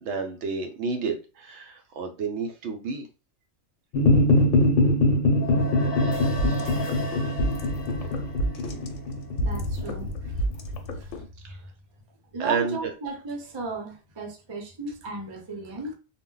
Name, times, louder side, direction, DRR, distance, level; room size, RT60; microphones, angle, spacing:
voice 1, 0.0-3.1 11.4-11.6 12.4-12.9, right 4 dB, 70° right, 0.8 m, -30 dB
sound 1, 3.9-10.5, left 1 dB, 50° left, 0.8 m, -23 dB
sound 2, 5.2-9.8, left 3 dB, 35° left, 0.4 m, -37 dB
sound 3, 6.1-11.2, equal, 80° left, 1.0 m, -31 dB
voice 2, 9.4-10.1 11.0-11.1 12.3-15.9, right 3 dB, 35° right, 0.4 m, -35 dB
2.1 x 2.1 x 3.8 m
omnidirectional pair, 1.3 m